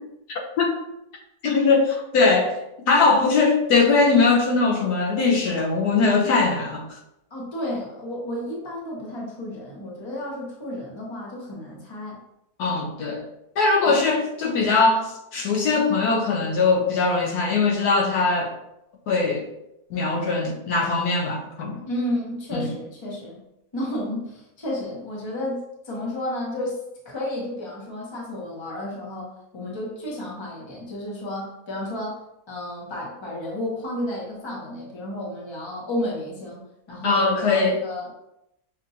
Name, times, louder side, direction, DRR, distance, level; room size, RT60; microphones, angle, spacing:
voice 1, 1.4-2.5 2.9-6.8 12.6-13.2 13.6-18.5 19.1-19.5 19.9-21.8 22.5-22.7 37.0-37.8, left 4 dB, 75° left, 0 dB, 1.2 m, -21 dB
voice 2, 7.3-12.2 13.9-14.0 21.9-23.4 23.7-26.8 27.0-29.3 29.5-32.2 32.5-36.6 36.9-38.1, left 1 dB, 20° left, -4 dB, 0.9 m, -32 dB
6.0 x 2.5 x 2.8 m, 0.85 s
omnidirectional pair, 1.7 m